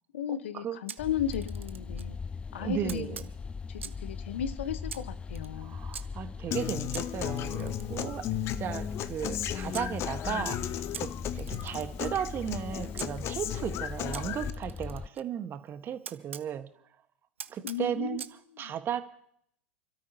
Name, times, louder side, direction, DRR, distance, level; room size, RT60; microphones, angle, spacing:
voice 1, 0.1-2.2 2.5-3.2 3.7-5.8 17.6-18.2 18.6-18.7, left 9 dB, 70° left, 1.2 m, -35 dB
Camera, 0.9-2.1 2.9-4.1 4.9-6.0 6.9-9.9 10.9-13.1 14.1-16.5 17.4-18.4, right 7 dB, 85° right, 0.9 m, -45 dB
sound 1, 1.0-15.1, left 5 dB, 15° left, 0.5 m, -40 dB
voice 2, 2.5-3.2 5.5-8.3 8.6-16.7 17.5-18.2 18.6-19.0, right 9 dB, 35° right, 1.4 m, -35 dB
Human voice / Acoustic guitar, 6.5-14.5, left 12 dB, 40° left, 0.9 m, -35 dB
29.0 x 13.0 x 2.9 m
hypercardioid pair, 90°, 7 cm